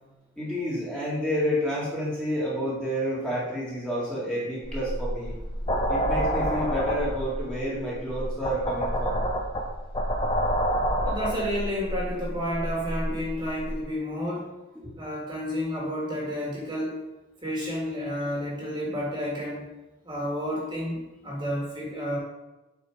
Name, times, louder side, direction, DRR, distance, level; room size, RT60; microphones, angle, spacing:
voice 1, 0.4-5.3 5.9-9.2, equal, 5° left, -8 dB, 2.0 m, -29 dB
sound 1, 4.6-13.8, equal, 25° left, 0.8 m, -28 dB
voice 2, 11.0-14.5 15.0-17.0 17.4-19.7 20.0-22.2, equal, 20° right, -4 dB, 1.9 m, -31 dB
8.3 x 4.4 x 4.9 m, 1.0 s
head